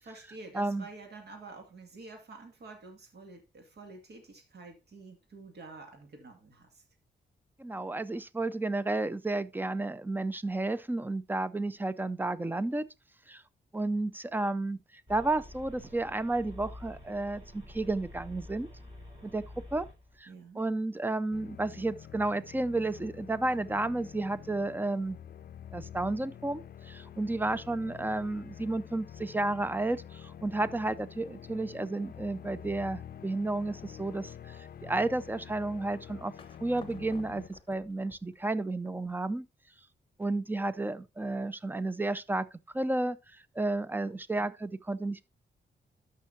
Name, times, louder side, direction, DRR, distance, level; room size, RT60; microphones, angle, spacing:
voice 1, 0.0-6.8 20.3-20.6 44.0-44.2 44.4-44.5, right 3 dB, 65° right, 2.1 m, -49 dB
voice 2, 0.5-0.9 7.6-12.9 13.3-13.4 13.7-14.8 15.1-18.7 19.2-19.4 19.7-19.9 20.2-20.3 20.6-25.2 25.7-36.3 36.6-39.5 40.2-42.5 42.7-43.2 43.6-45.2, right 2 dB, 10° right, 0.5 m, -32 dB
sound 1, 15.1-20.2, left 1 dB, 25° right, 4.9 m, -48 dB
sound 2, 21.3-37.5, left 9 dB, 55° left, 0.5 m, -47 dB
sound 3, 36.4-39.4, left 4 dB, 30° left, 1.0 m, -56 dB
13.0 x 5.7 x 2.7 m
wide cardioid pair, 110°, 18 cm